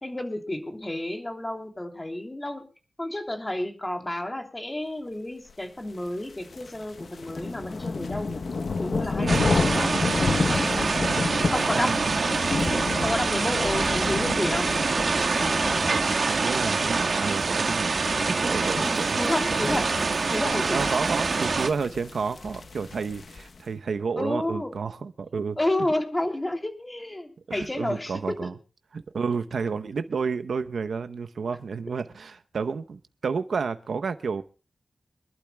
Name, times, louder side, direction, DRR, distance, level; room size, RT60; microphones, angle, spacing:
voice 1, 0.0-2.6 3.0-8.4 8.8-10.9 11.5-11.9 13.0-14.7 18.8-19.9 20.3-20.9 24.2-24.7 25.6-28.5, left 1 dB, 20° left, 3.0 m, -31 dB
sound 1, 6.1-23.6, left 4 dB, 70° left, 1.0 m, -31 dB
voice 2, 9.2-9.8 11.7-12.3 15.9-19.6 20.7-25.6 27.5-28.5 28.9-34.4, right 5 dB, 90° right, 0.8 m, -31 dB
sound 2, 9.3-21.7, right 4 dB, 65° right, 1.6 m, -25 dB
25.5 x 12.0 x 2.2 m
wide cardioid pair, 85°, 0 cm